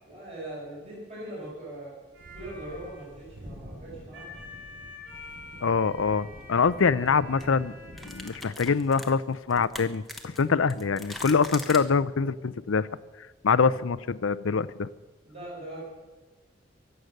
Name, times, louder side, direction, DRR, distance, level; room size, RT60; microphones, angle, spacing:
voice 1, 0.0-1.9 2.3-4.2 15.2-15.8, right 1 dB, 30° right, -6 dB, 5.7 m, -40 dB
sound 1, 2.1-8.3, left 1 dB, 60° right, 7.1 m, -44 dB
sound 2, 5.2-5.4 6.9-7.1 7.4-7.5 8.0-11.8, left 1 dB, ahead, 1.1 m, -41 dB
voice 2, 5.6-7.7 8.0-12.9 13.4-14.9, left 5 dB, 85° left, 17 dB, 0.6 m, -24 dB
23.5 x 8.0 x 6.6 m, 1.3 s
head